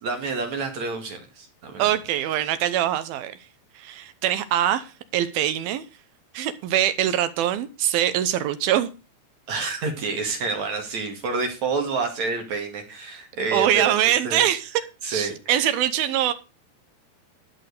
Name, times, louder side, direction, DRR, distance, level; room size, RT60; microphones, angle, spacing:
voice 1, 0.0-1.9 9.5-14.4 15.0-15.7, right 4 dB, 50° right, 4 dB, 2.8 m, -29 dB
voice 2, 1.8-3.4 3.8-5.8 6.3-8.9 13.5-14.7 15.1-16.3, right 11 dB, 75° right, 11 dB, 2.3 m, -23 dB
13.0 x 6.2 x 6.6 m, 0.31 s
omnidirectional pair, 5.1 m